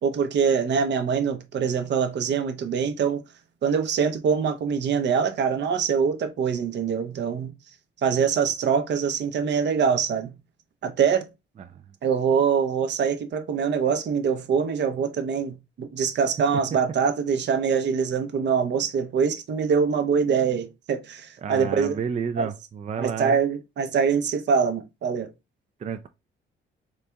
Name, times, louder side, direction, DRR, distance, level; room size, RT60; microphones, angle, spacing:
voice 1, 0.0-3.2 3.6-7.5 8.0-10.3 10.8-11.3 12.0-22.0 22.4-22.5 23.0-25.3, right 6 dB, 60° right, 0.8 m, -24 dB
voice 2, 21.4-23.4 25.8-26.1, right 6 dB, 35° right, 0.4 m, -31 dB
4.1 x 3.3 x 2.2 m
cardioid pair, 90°, 20 cm